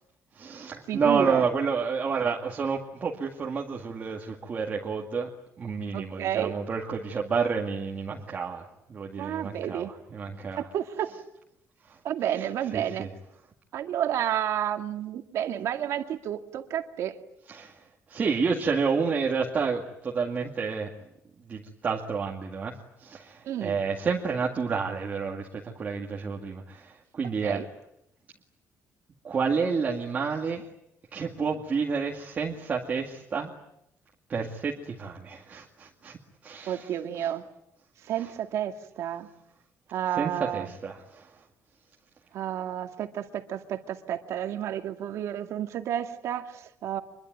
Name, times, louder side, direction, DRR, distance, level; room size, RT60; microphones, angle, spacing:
voice 1, 0.3-5.3 5.6-10.7 11.9-12.0 12.3-13.1 17.5-17.8 18.1-20.9 21.5-27.6 29.2-30.7 31.1-33.5 34.3-36.2 36.4-36.9 38.2-38.3 40.2-41.3, right 5 dB, 30° right, 0 dB, 2.1 m, -30 dB
voice 2, 0.9-1.5 5.9-6.6 9.2-9.9 10.6-11.1 12.0-13.1 13.7-17.2 23.5-23.8 27.4-27.7 36.7-37.5 38.0-39.3 39.9-40.7 42.3-47.0, right 10 dB, 60° right, 6 dB, 2.2 m, -31 dB
25.5 x 22.5 x 9.3 m, 0.80 s
cardioid pair, 180°, 5 cm